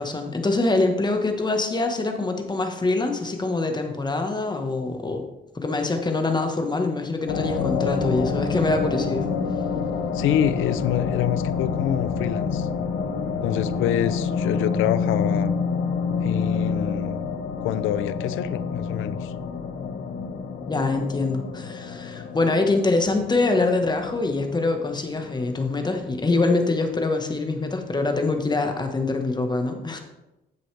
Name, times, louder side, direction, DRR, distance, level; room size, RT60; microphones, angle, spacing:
voice 1, 0.0-5.2 5.5-9.3 20.7-30.0, left 3 dB, 20° left, 5 dB, 1.4 m, -24 dB
sound 1, 7.3-25.9, left 5 dB, 70° left, 1.0 m, -28 dB
voice 2, 10.1-12.7 13.4-15.6 16.2-17.2 17.6-19.3, left 11 dB, 90° left, 15 dB, 0.5 m, -26 dB
10.0 x 7.6 x 3.4 m, 0.98 s
cardioid pair, 90°, 20 cm